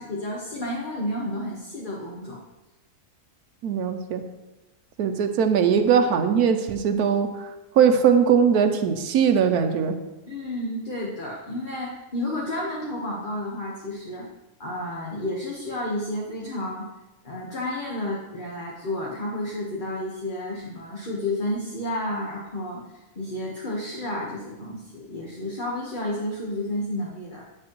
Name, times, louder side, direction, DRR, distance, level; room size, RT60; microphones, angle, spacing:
voice 1, 0.0-2.4 10.3-14.3 14.6-16.9 17.2-22.8 23.1-27.4, left 1 dB, 35° left, -4 dB, 1.3 m, -31 dB
voice 2, 3.6-4.2 5.0-7.5 7.7-10.0, right 7 dB, 90° right, 6 dB, 1.2 m, -20 dB
9.7 x 8.5 x 3.0 m, 1.0 s
omnidirectional pair, 1.6 m